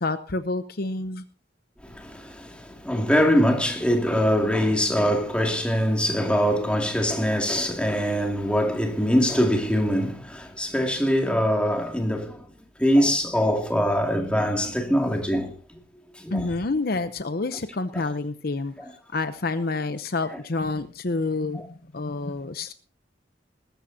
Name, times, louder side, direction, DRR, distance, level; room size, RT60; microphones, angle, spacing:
voice 1, 0.0-1.2 16.3-18.7 19.1-22.7, left 3 dB, 55° left, 0.8 m, -28 dB
voice 2, 1.8-12.4 12.8-15.5 16.2-16.5 17.9-18.0 18.8-18.9 21.5-21.6, equal, 5° left, 2.4 m, -23 dB
20.5 x 14.0 x 2.8 m
head